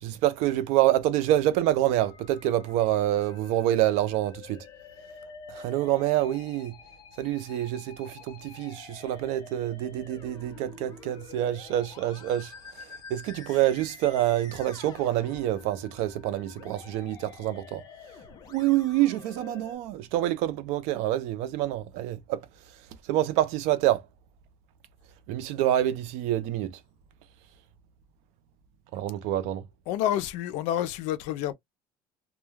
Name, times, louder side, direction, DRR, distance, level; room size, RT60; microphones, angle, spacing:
voice 1, 0.0-4.7 5.5-6.8 7.2-17.8 18.5-22.4 23.1-24.0 25.3-26.8 28.9-29.6, right 13 dB, 70° right, 0.5 m, -27 dB
Musical instrument, 1.8-19.8, left 6 dB, 35° left, 0.7 m, -48 dB
voice 2, 29.9-31.5, left 11 dB, 75° left, 0.5 m, -28 dB
2.3 x 2.2 x 3.1 m
cardioid pair, 165°, 12 cm